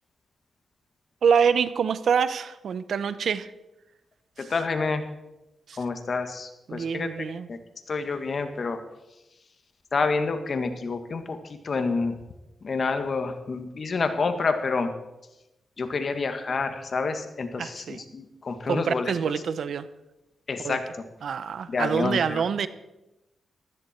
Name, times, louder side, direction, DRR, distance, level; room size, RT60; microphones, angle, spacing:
voice 1, 1.2-3.5 4.4-4.5 5.7-5.8 6.7-7.5 17.6-18.0 18.7-19.9 20.6-20.8 21.2-22.7, right 6 dB, 75° right, 14 dB, 0.8 m, -26 dB
voice 2, 4.4-5.0 5.8-7.1 7.5-7.6 7.9-8.8 9.9-11.4 11.6-12.2 12.6-14.9 15.8-19.1 20.5-20.9 21.7-22.4, left 4 dB, 55° left, 7 dB, 1.9 m, -28 dB
15.0 x 14.0 x 4.5 m, 0.99 s
cardioid pair, 60°, 0 cm